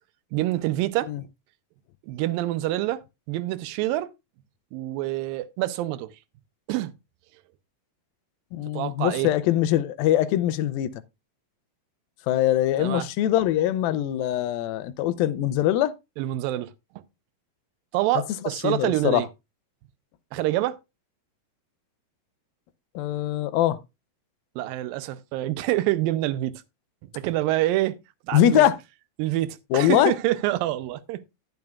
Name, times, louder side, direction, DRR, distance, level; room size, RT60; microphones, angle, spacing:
voice 1, 0.3-1.1 2.0-3.0 3.3-4.1 4.7-6.1 6.7-6.9 8.7-9.3 12.8-13.1 16.2-17.0 17.9-19.3 20.3-20.8 24.6-26.6 27.1-28.0 28.3-28.6 29.2-31.2, right 15 dB, 85° right, 2.4 m, -26 dB
voice 2, 8.5-10.9 12.3-15.9 18.6-19.2 23.0-23.8 28.3-28.8 29.7-30.1, left 12 dB, 90° left, 2.5 m, -22 dB
10.5 x 10.5 x 2.3 m
omnidirectional pair, 4.1 m